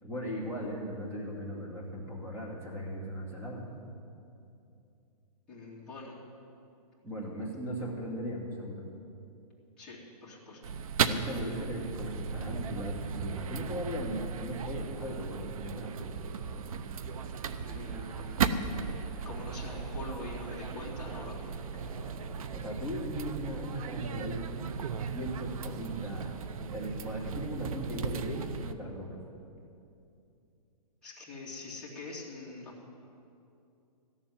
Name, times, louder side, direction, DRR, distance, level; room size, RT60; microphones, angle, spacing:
voice 1, 0.0-3.7 7.0-8.9 11.1-16.1 22.5-24.5 25.0-29.2, equal, 10° right, -3 dB, 2.3 m, -38 dB
voice 2, 5.5-6.2 9.8-10.6 17.7-21.5 31.0-32.7, left 2 dB, 5° left, -10 dB, 2.6 m, -44 dB
sound 1, 10.6-28.7, right 6 dB, 60° right, 0.8 m, -36 dB
sound 2, 16.2-22.5, right 2 dB, 75° right, 2.7 m, -53 dB
14.0 x 7.2 x 9.9 m, 2.6 s
hypercardioid pair, 165°, 20 cm